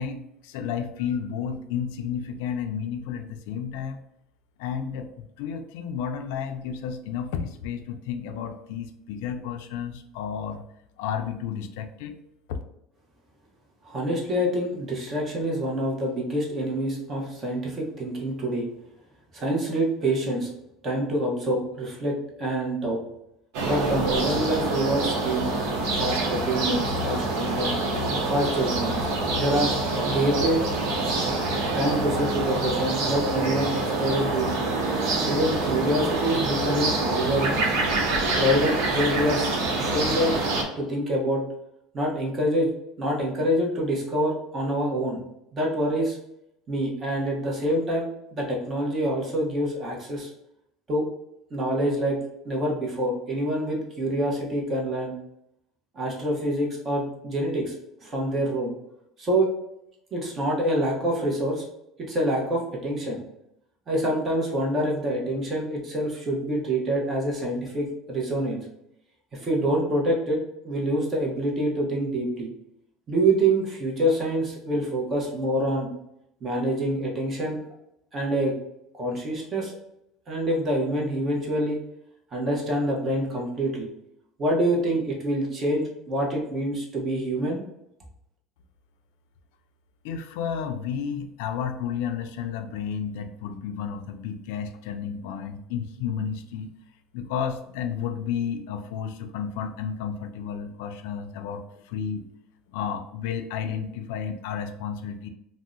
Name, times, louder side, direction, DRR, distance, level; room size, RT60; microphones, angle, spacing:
voice 1, 0.0-4.0 4.6-10.6 11.0-12.2 12.5-12.6 90.0-96.7 97.1-102.2 102.7-105.3, left 7 dB, 80° left, 7 dB, 0.4 m, -32 dB
voice 2, 13.8-18.7 19.3-20.5 20.8-23.0 23.6-25.4 25.9-27.8 28.3-29.0 29.3-29.7 30.0-30.6 31.7-34.7 35.2-37.7 38.3-39.5 39.8-40.3 40.8-41.4 41.9-42.7 43.0-45.2 45.5-46.2 46.7-50.3 50.9-51.0 51.5-52.2 52.4-55.1 55.9-57.7 58.0-58.7 59.2-59.5 60.1-61.7 62.0-63.2 63.9-68.6 69.3-70.4 70.6-72.5 73.1-75.9 76.4-77.6 78.1-78.5 79.0-79.7 80.3-81.8 82.3-83.9 84.4-87.6, right 1 dB, 25° right, -2 dB, 0.8 m, -26 dB
sound 1, 23.5-40.6, right 2 dB, 70° right, 0.7 m, -26 dB
2.7 x 2.1 x 3.6 m, 0.79 s
cardioid pair, 155°, 0 cm